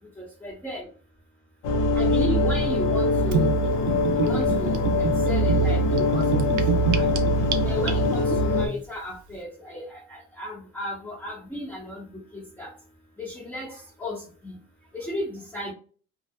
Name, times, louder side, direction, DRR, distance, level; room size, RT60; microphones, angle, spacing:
voice 1, 0.2-0.8 1.9-3.5 4.1-6.4 6.7-7.2 7.6-12.0 12.3-12.7 13.2-14.5 14.9-15.7, left 1 dB, 5° left, -5 dB, 0.7 m, -34 dB
sound 1, 1.6-8.7, left 1 dB, 85° left, 0.6 m, -22 dB
Gurgling / Bathtub (filling or washing), 3.3-8.4, right 6 dB, 80° right, 0.5 m, -28 dB
2.2 x 2.0 x 2.7 m, 0.40 s
cardioid pair, 90°, 30 cm